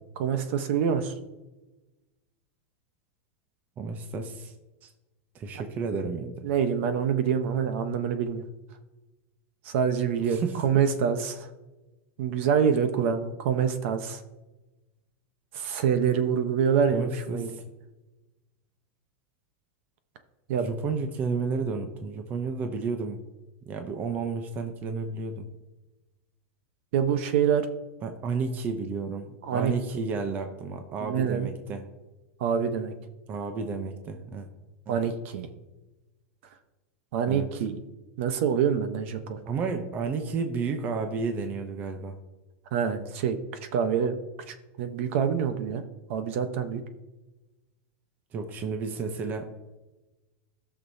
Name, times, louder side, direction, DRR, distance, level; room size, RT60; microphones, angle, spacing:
voice 1, 0.2-1.1 6.4-8.4 9.6-11.5 12.2-14.2 15.5-17.5 20.5-20.7 26.9-27.7 29.4-29.7 31.0-31.5 32.4-32.9 34.9-35.5 37.1-37.8 38.2-39.4 42.7-43.4 43.7-44.1 44.5-45.8 46.1-46.8, right 7 dB, 60° right, 9 dB, 0.9 m, -26 dB
voice 2, 3.8-4.5 4.8-4.9 5.3-6.5 10.2-10.6 16.9-17.6 20.6-23.2 23.7-25.5 28.0-31.9 33.3-34.5 34.9-35.0 37.3-37.5 39.5-42.2 48.3-49.5, right 4 dB, 25° right, 6 dB, 0.7 m, -32 dB
17.5 x 6.2 x 2.7 m, 1.1 s
supercardioid pair, 170°, 8 cm